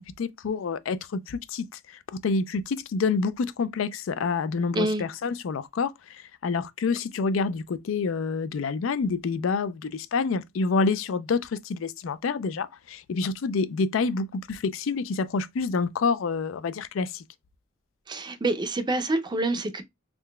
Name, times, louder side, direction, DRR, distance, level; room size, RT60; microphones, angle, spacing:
voice 1, 0.0-17.2, left 4 dB, 80° left, 0.4 m, -28 dB
voice 2, 18.1-19.8, right 2 dB, 25° right, 0.5 m, -27 dB
3.7 x 3.2 x 2.2 m
head